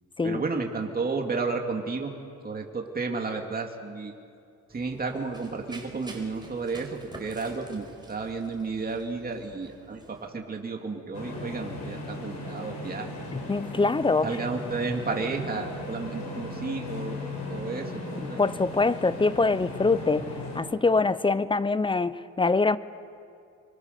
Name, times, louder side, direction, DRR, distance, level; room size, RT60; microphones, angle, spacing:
voice 1, 0.2-2.1 2.4-4.1 4.7-13.1 14.2-17.2 17.5-18.4, right 4 dB, 30° right, 2 dB, 2.7 m, -32 dB
Run, 4.7-10.3, right 2 dB, 15° right, 4.9 m, -48 dB
sound 1, 11.1-20.6, left 2 dB, 65° left, 7.1 m, -37 dB
voice 2, 13.3-14.3 18.2-20.3 20.5-22.8, left 3 dB, 15° left, 16 dB, 0.8 m, -24 dB
26.5 x 23.5 x 6.8 m, 2.4 s
cardioid pair, 90°, 30 cm